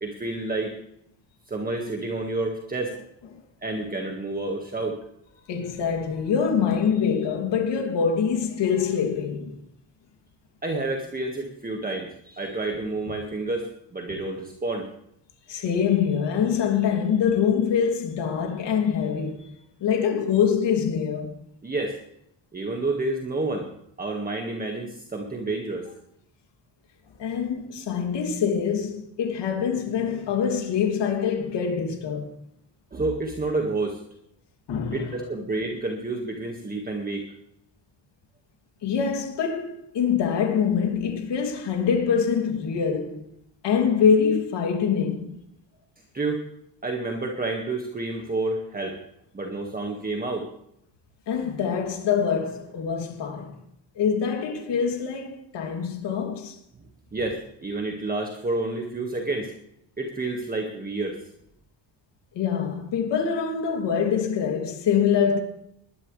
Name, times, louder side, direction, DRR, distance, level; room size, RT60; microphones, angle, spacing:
voice 1, 0.0-0.7 1.5-2.9 3.6-5.0 10.6-13.7 13.9-14.9 21.6-21.9 22.5-23.7 24.0-25.8 32.9-34.0 34.9-37.2 46.1-46.4 46.8-49.0 49.3-50.4 57.1-59.5 60.0-61.2, right 2 dB, 20° right, 1.9 m, -29 dB
voice 2, 5.5-9.6 15.5-19.5 19.8-21.4 27.2-32.3 34.7-35.2 38.8-43.2 43.6-45.4 51.3-53.6 53.9-56.6 62.3-65.4, left 7 dB, 60° left, 3.1 m, -24 dB
20.5 x 12.0 x 3.4 m
cardioid pair, 140°, 46 cm